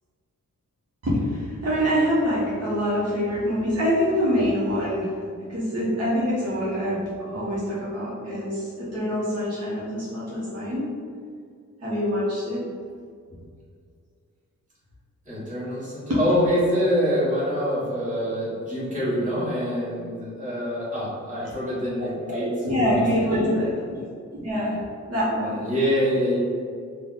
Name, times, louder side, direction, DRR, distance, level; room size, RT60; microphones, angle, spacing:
voice 1, 1.0-5.1 5.5-10.9 11.8-12.6 22.3-24.0 24.3-24.8 25.1-25.6, equal, 55° right, -9 dB, 1.2 m, -25 dB
voice 2, 15.2-22.5 22.9-23.5 25.6-26.4, equal, 25° right, -9 dB, 1.4 m, -25 dB
4.4 x 2.5 x 3.9 m, 2.1 s
wide cardioid pair, 155°, 29 cm